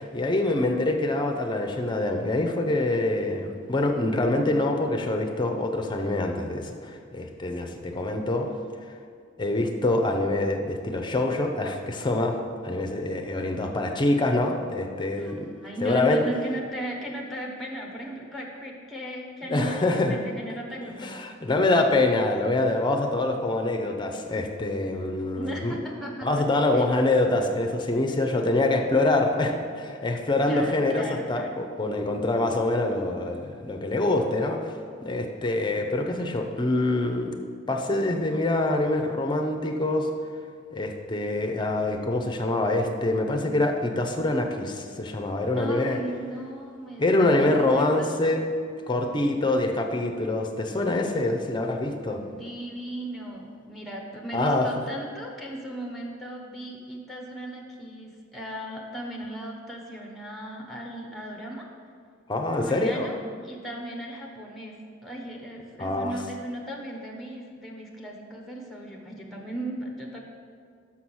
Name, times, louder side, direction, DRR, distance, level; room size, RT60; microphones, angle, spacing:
voice 1, 0.0-8.5 9.4-12.4 12.6-15.5 15.8-16.2 19.5-20.2 21.0-25.7 26.2-37.4 37.7-40.1 40.7-46.0 47.0-48.4 48.9-52.2 54.3-54.7 62.3-63.1 65.8-66.2, left 2 dB, 25° left, 4 dB, 0.6 m, -25 dB
voice 2, 15.2-21.3 25.4-26.4 26.7-26.8 30.4-31.6 45.6-48.1 52.1-61.7 62.6-63.2 63.4-70.2, right 1 dB, ahead, -1 dB, 1.0 m, -37 dB
6.0 x 5.7 x 6.2 m, 2.1 s
head